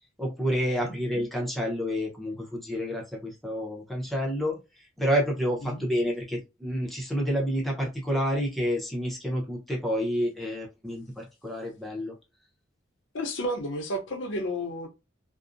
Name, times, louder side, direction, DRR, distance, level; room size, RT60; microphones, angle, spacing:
voice 1, 0.2-4.5 5.0-12.1, equal, ahead, 0.7 m, -29 dB
voice 2, 13.1-14.9, equal, 70° left, 0.6 m, -32 dB
2.6 x 2.0 x 2.5 m
head